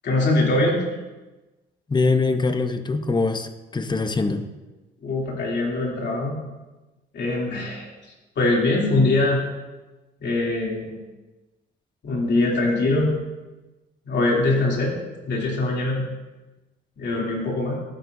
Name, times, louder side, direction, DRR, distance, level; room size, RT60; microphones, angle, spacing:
voice 1, 0.0-0.8 5.0-6.4 7.1-7.8 8.4-9.4 10.2-11.0 12.0-13.2 14.0-15.0 15.3-16.0 17.0-17.7, left 2 dB, 60° left, -2 dB, 2.9 m, -22 dB
voice 2, 1.9-4.4, left 3 dB, 20° left, 9 dB, 0.8 m, -23 dB
12.0 x 10.5 x 2.7 m, 1.1 s
cardioid pair, 90°, 20 cm